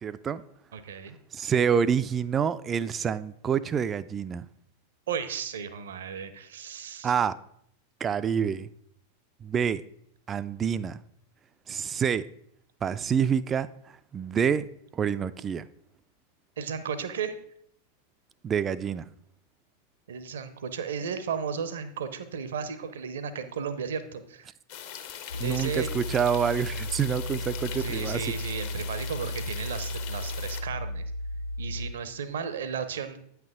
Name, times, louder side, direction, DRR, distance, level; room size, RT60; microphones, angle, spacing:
voice 1, 0.0-0.4 1.3-4.5 7.0-7.4 8.0-8.7 9.4-9.8 10.3-11.0 11.7-12.3 12.8-13.7 14.1-14.7 14.9-15.6 18.4-19.1 25.4-28.3, right 7 dB, 25° right, 0.3 m, -27 dB
voice 2, 0.7-1.2 5.1-7.1 16.6-17.4 20.1-24.5 25.4-25.9 27.7-31.1 31.6-33.2, right 6 dB, 60° right, 0.7 m, -34 dB
sound 1, 24.7-30.6, left 9 dB, 50° left, 0.8 m, -41 dB
sound 2, 25.3-31.9, left 1 dB, 75° left, 0.4 m, -34 dB
9.0 x 5.8 x 3.6 m
figure-of-eight pair, 90°, 0 cm